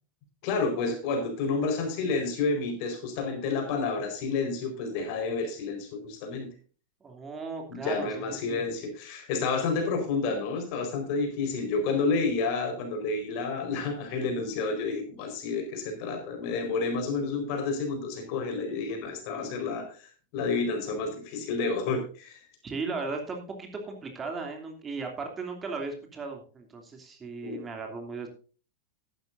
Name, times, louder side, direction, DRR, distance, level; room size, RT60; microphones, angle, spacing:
voice 1, 0.4-6.5 7.8-22.4 27.4-27.7, left 4 dB, 45° left, 5 dB, 4.6 m, -30 dB
voice 2, 7.0-8.6 22.6-28.3, right 4 dB, 20° right, 3 dB, 2.8 m, -37 dB
15.0 x 12.0 x 2.6 m, 0.37 s
figure-of-eight pair, 90°, 0 cm